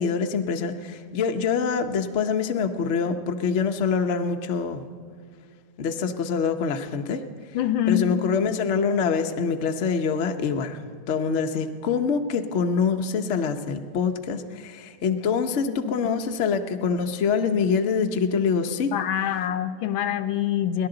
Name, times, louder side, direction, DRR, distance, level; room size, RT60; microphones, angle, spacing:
voice 1, 0.0-4.8 5.8-7.2 7.9-18.9, left 6 dB, 55° left, 5 dB, 0.8 m, -25 dB
voice 2, 7.5-8.1 15.7-16.0 18.9-20.9, left 10 dB, 75° left, 9 dB, 1.4 m, -25 dB
30.0 x 11.5 x 3.9 m, 2.1 s
omnidirectional pair, 2.2 m